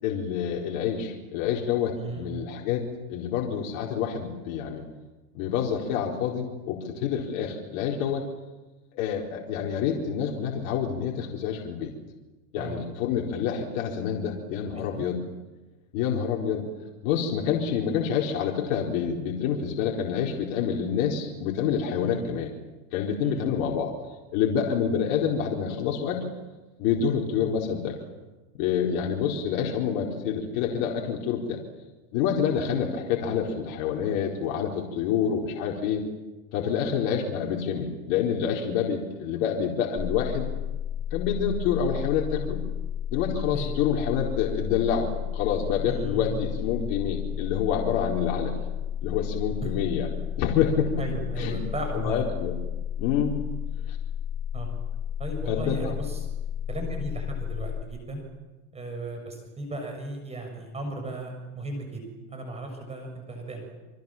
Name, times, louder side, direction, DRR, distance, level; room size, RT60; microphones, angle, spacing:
voice 1, 0.0-4.8 5.3-8.2 8.9-11.9 12.5-15.2 15.9-16.6 17.0-22.5 22.9-23.9 24.3-26.2 26.8-28.0 28.6-31.6 32.1-36.0 36.5-40.5 41.1-42.6 43.1-48.6 49.0-50.1 50.4-51.0 51.4-51.6 51.9-52.5 53.0-53.4 53.9-54.0 55.5-55.9, left 7 dB, 55° left, -1 dB, 4.5 m, -27 dB
voice 2, 2.0-2.3 12.5-12.8 14.8-15.0 22.0-22.2 23.2-23.4 43.5-43.7 45.9-46.3 46.6-46.7 49.6-49.7 51.0-52.2 54.5-54.7 55.2-56.3 56.7-58.2 58.7-62.0 62.3-63.7, right 2 dB, 15° right, 4 dB, 6.6 m, -36 dB
sound 1, 40.0-57.8, left 9 dB, 10° left, 0.8 m, -32 dB
29.0 x 24.5 x 7.4 m, 1.1 s
supercardioid pair, 140°, 45 cm